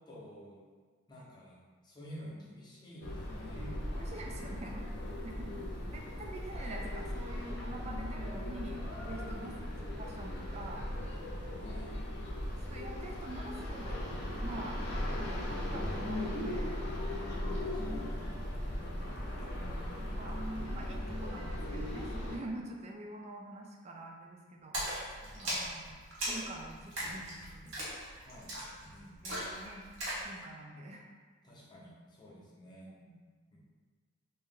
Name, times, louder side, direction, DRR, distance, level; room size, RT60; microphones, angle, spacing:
voice 1, 0.1-0.6 1.1-3.8 5.0-5.7 9.0-9.5 11.2-12.0 17.0-18.2 25.2-25.6 28.2-28.6 28.8-29.4 31.4-32.9 33.5-33.6, equal, 20° left, -6 dB, 0.7 m, -51 dB
sound 1, 3.0-22.4, left 1 dB, 50° left, 0.7 m, -38 dB
voice 2, 3.9-4.8 5.2-5.5 5.9-9.5 10.0-10.9 12.7-14.1 14.4-16.8 19.6-24.8 25.4-26.0 26.3-27.7 28.9-29.0 29.2-29.8 30.2-31.1 32.8-33.2, right 1 dB, 30° right, 1 dB, 0.4 m, -46 dB
sound 2, 8.6-21.9, equal, 85° right, 1.1 m, -51 dB
Splash splatter, 24.7-30.3, right 1 dB, 60° right, 1.2 m, -39 dB
3.0 x 2.7 x 3.8 m, 1.5 s
head